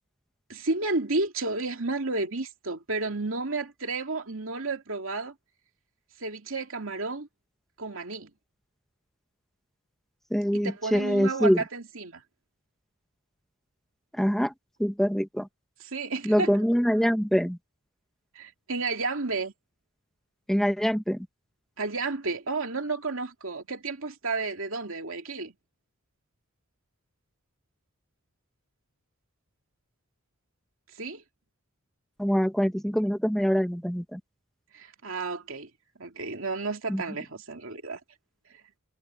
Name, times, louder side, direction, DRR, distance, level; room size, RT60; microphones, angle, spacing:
voice 1, 0.5-5.3 6.2-7.3 7.8-8.3 10.5-12.2 15.8-16.5 18.3-19.5 21.8-25.5 31.0-31.2 34.7-35.7 36.0-38.0, right 3 dB, 65° right, 2.7 m, -32 dB
voice 2, 10.3-11.6 14.1-14.5 14.8-15.5 16.2-17.6 20.5-21.3 32.2-34.2 36.9-37.0, equal, ahead, 1.6 m, -24 dB
head